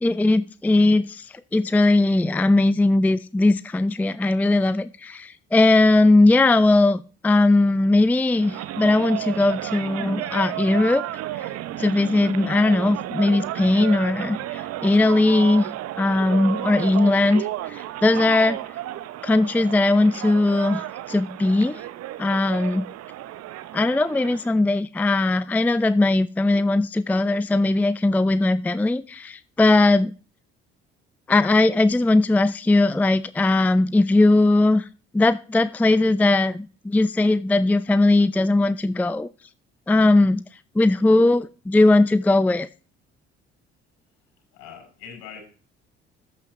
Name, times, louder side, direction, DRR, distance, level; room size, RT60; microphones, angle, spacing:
voice 1, 0.0-11.0 11.4-11.5 11.8-15.7 16.0-18.6 19.2-21.8 22.2-22.9 23.7-30.1 31.3-34.9 35.1-39.3 39.9-40.4 40.8-42.7, left 2 dB, 5° left, 0.5 m, -19 dB
sound 1, 8.3-24.5, right 14 dB, 50° right, 0.8 m, -33 dB
voice 2, 44.5-45.4, left 7 dB, 65° left, 5.8 m, -43 dB
14.0 x 9.3 x 2.9 m
figure-of-eight pair, 50°, 32 cm